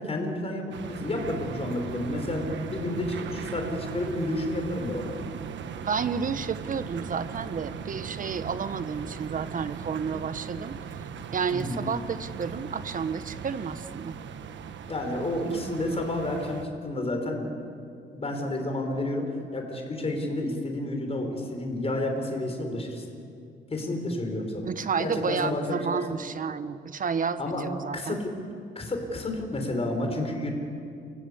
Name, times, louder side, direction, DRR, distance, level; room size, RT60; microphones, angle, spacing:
voice 1, 0.0-5.2 11.5-11.9 14.9-17.6 18.1-19.3 19.5-23.1 23.7-24.7 25.0-26.0 27.4-27.6 27.9-28.3 28.8-30.5, left 1 dB, 30° left, 3 dB, 5.4 m, -30 dB
sound 1, 0.7-16.7, right 7 dB, 65° right, 1.3 m, -38 dB
voice 2, 5.9-10.8 11.3-14.2 24.7-28.2, right 6 dB, 45° right, 13 dB, 1.1 m, -31 dB
29.5 x 16.0 x 8.6 m, 2.4 s
cardioid pair, 90°, 20 cm